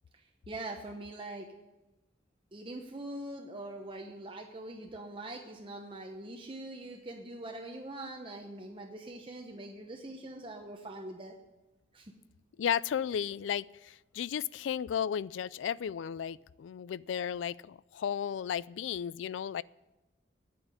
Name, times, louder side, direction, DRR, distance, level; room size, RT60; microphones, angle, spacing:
voice 1, 0.1-1.5 2.5-11.3 11.9-12.1, right 2 dB, 25° right, 2 dB, 0.9 m, -43 dB
voice 2, 12.6-19.6, left 8 dB, 80° left, 21 dB, 0.3 m, -34 dB
9.5 x 8.8 x 9.5 m, 1.1 s
head